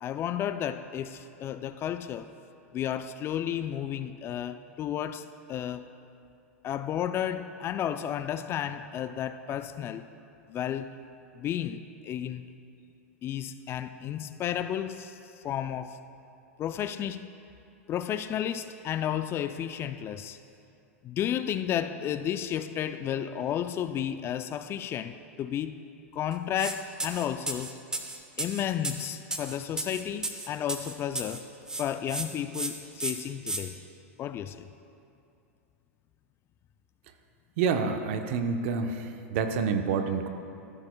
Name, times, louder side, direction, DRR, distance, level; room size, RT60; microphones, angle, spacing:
voice 1, 0.0-2.3 2.7-5.9 6.6-10.0 10.5-10.9 11.4-12.5 13.2-15.2 15.4-16.0 16.6-17.3 17.9-20.4 21.0-25.7 26.1-27.8 28.4-31.5 31.7-33.8 34.2-34.7, left 10 dB, 30° left, 11 dB, 0.4 m, -32 dB
sound 1, 26.6-26.7 27.0-31.4 31.7-32.3 32.5-32.7 33.0-33.6, right 2 dB, 10° right, 0.8 m, -33 dB
voice 2, 37.6-40.3, right 5 dB, 60° right, 7 dB, 0.8 m, -28 dB
13.5 x 12.0 x 2.3 m, 2.6 s
hypercardioid pair, 105°, 8 cm